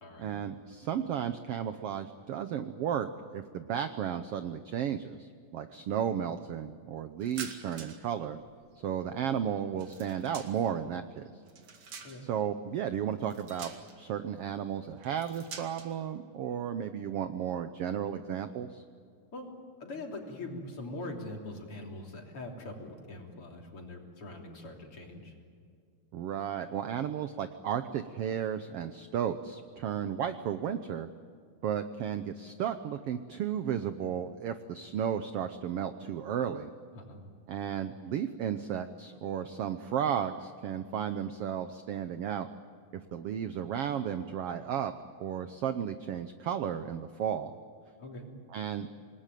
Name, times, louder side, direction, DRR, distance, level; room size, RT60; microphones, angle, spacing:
voice 1, 0.2-8.4 8.8-11.2 12.2-18.8 26.1-31.1 31.6-36.7 37.5-42.5 42.9-44.9 45.2-47.5 48.5-48.9, right 9 dB, 70° right, 10 dB, 1.4 m, -34 dB
sound 1, 7.2-8.1 8.4-10.8 11.3-12.4 13.2-14.1 15.0-15.9, right 6 dB, 55° right, 3.0 m, -47 dB
voice 2, 19.8-25.3 36.9-37.2 48.0-48.3, left 2 dB, 45° left, 1 dB, 4.0 m, -42 dB
27.5 x 20.0 x 9.2 m, 2.2 s
omnidirectional pair, 3.6 m